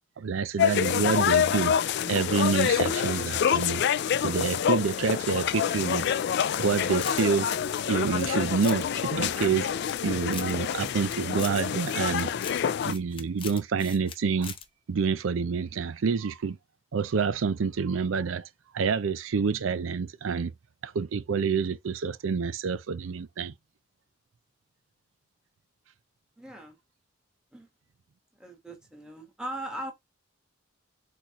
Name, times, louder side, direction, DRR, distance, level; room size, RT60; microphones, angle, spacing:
voice 1, 0.2-1.7 2.1-3.8 4.2-6.0 6.6-7.5 7.9-9.7 10.0-12.3 12.8-14.5 14.9-16.6 16.9-18.5 18.7-20.5 20.8-23.5, right 5 dB, 80° right, 0.5 m, -27 dB
sound 1, 0.6-12.9, left 8 dB, 60° left, 0.3 m, -27 dB
sound 2, 5.7-7.2 7.5-8.8 9.2-10.0 10.3-14.2 14.4-14.6, left 7 dB, 25° left, 0.7 m, -42 dB
voice 2, 26.4-26.8 27.5-27.7 28.4-29.9, right 1 dB, 5° right, 1.4 m, -39 dB
4.1 x 4.0 x 2.9 m
head